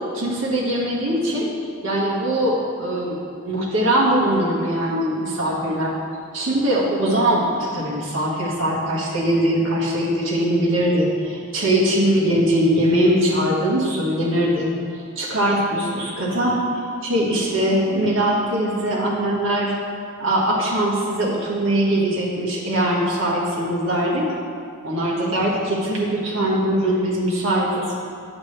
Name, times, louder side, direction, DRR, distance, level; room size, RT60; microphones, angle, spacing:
voice 1, 0.1-1.5 1.8-3.2 3.4-5.9 6.3-14.7 15.1-16.6 17.0-19.7 20.2-24.3 24.8-27.9, right 1 dB, 60° right, -5 dB, 1.8 m, -21 dB
8.8 x 7.4 x 3.4 m, 2.4 s
head